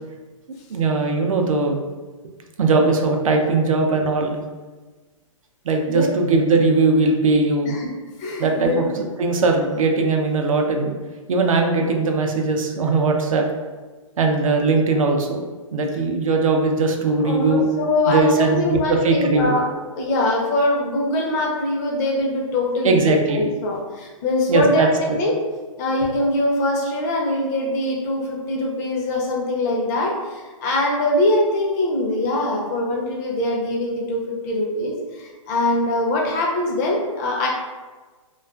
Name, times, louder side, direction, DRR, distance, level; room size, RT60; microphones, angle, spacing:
voice 1, 0.7-1.8 2.6-4.4 5.6-7.7 8.4-10.9 11.3-13.4 14.2-15.4 15.7-17.7 18.1-19.6 22.8-23.5 24.5-24.9, right 3 dB, 75° right, 3 dB, 0.5 m, -19 dB
voice 2, 8.2-8.8 17.2-19.7 20.0-25.3 25.8-37.5, left 1 dB, 30° left, -1 dB, 0.5 m, -23 dB
2.3 x 2.3 x 2.3 m, 1.3 s
hypercardioid pair, 140°, 17 cm